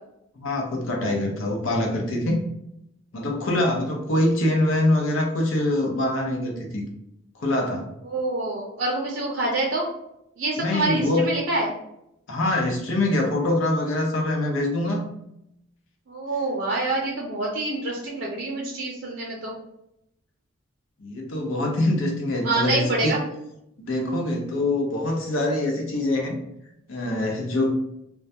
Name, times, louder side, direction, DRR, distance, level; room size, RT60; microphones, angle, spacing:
voice 1, 0.4-2.4 3.1-6.8 7.3-7.9 10.6-11.3 12.3-15.0 21.0-23.2 23.8-26.4 26.9-27.7, left 1 dB, 75° left, 1 dB, 0.6 m, -24 dB
voice 2, 8.1-9.9 10.4-11.7 16.1-19.5 22.4-23.2, right 2 dB, 60° right, -2 dB, 0.5 m, -26 dB
2.2 x 2.1 x 2.7 m, 0.81 s
head